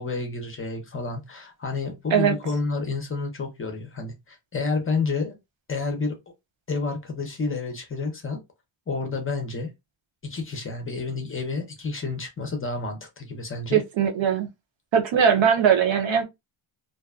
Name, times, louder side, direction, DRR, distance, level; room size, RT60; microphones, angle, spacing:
voice 1, 0.0-5.4 5.7-6.2 6.7-8.4 8.9-9.7 10.2-13.8, left 3 dB, 25° left, 0.6 m, -30 dB
voice 2, 13.7-14.5 14.9-16.2, right 7 dB, 70° right, 0.7 m, -20 dB
2.5 x 2.2 x 2.3 m
wide cardioid pair, 155°, 48 cm